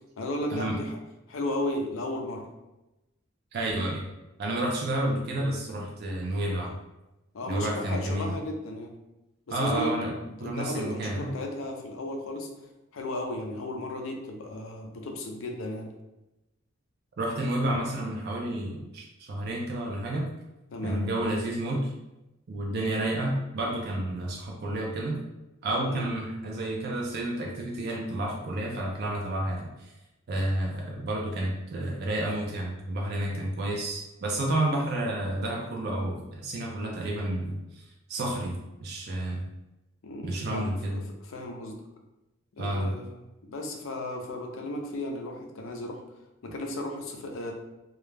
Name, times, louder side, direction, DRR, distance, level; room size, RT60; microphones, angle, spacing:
voice 1, 0.2-1.0 1.3-2.5 7.3-9.0 9.5-12.5 12.9-15.9 20.7-21.0 25.8-26.1 33.3-33.5 40.0-41.8 42.5-43.1 43.4-46.0 46.4-47.5, left 1 dB, 75° left, 2 dB, 0.4 m, -35 dB
voice 2, 3.5-4.0 4.4-6.7 7.5-8.4 9.5-10.1 10.4-11.4 17.2-20.3 20.8-21.9 22.5-25.2 25.6-29.9 30.3-37.8 38.1-39.5 40.2-41.0 42.6-43.0, right 1 dB, 50° right, -1 dB, 0.4 m, -30 dB
2.3 x 2.0 x 3.2 m, 0.97 s
head